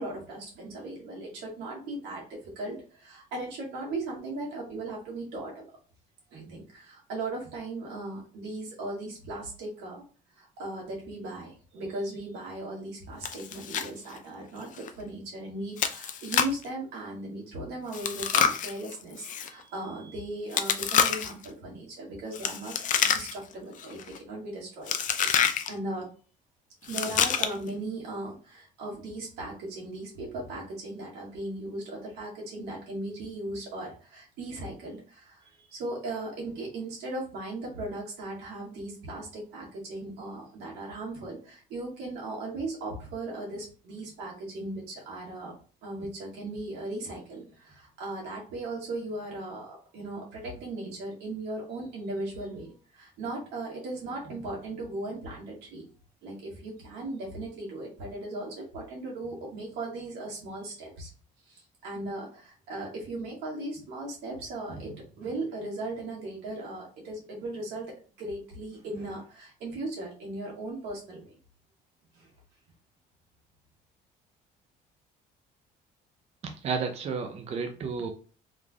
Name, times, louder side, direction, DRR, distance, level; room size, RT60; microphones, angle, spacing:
voice 1, 0.0-5.6 6.3-10.0 10.3-26.1 26.8-45.5 45.8-55.8 56.2-61.1 61.5-71.3 72.1-72.3, right 2 dB, 85° right, -2 dB, 1.8 m, -38 dB
Chewing mastication, 13.2-13.9 14.2-14.3 14.8-14.9 15.8-16.6 17.9-19.5 20.5-21.5 22.3-23.5 23.8-24.2 24.9-25.7 26.8-27.7, left 8 dB, 50° left, 0.5 m, -27 dB
voice 2, 76.4-78.1, right 5 dB, 40° right, 4 dB, 0.5 m, -32 dB
3.7 x 3.2 x 2.3 m, 0.38 s
cardioid pair, 110°, 17 cm